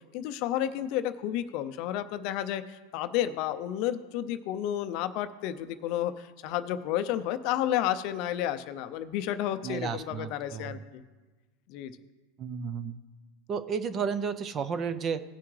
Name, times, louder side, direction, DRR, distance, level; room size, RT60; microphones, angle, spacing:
voice 1, 0.1-11.0 11.7-11.9, left 11 dB, 50° left, 11 dB, 0.5 m, -31 dB
voice 2, 9.6-10.8 12.4-12.9 13.5-15.2, right 6 dB, 25° right, 12 dB, 0.5 m, -32 dB
17.0 x 5.9 x 3.2 m, 1.3 s
supercardioid pair, 145°, 0 cm